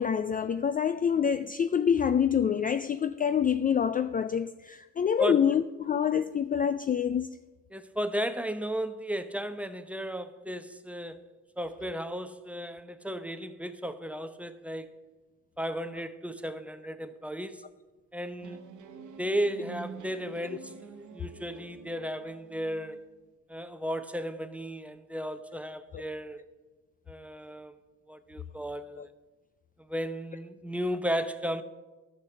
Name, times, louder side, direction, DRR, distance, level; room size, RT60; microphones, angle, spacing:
voice 1, 0.0-7.4 29.0-29.1, left 8 dB, 30° left, 0.4 m, -26 dB
voice 2, 7.7-11.3 11.6-15.0 15.6-17.6 18.1-18.6 19.2-23.1 23.5-26.4 27.1-27.8 28.1-29.1 29.8-31.6, equal, 5° right, 0.7 m, -34 dB
sound 1, 18.4-23.1, right 6 dB, 80° right, 1.1 m, -47 dB
11.5 x 6.5 x 6.9 m
cardioid pair, 90°, 30 cm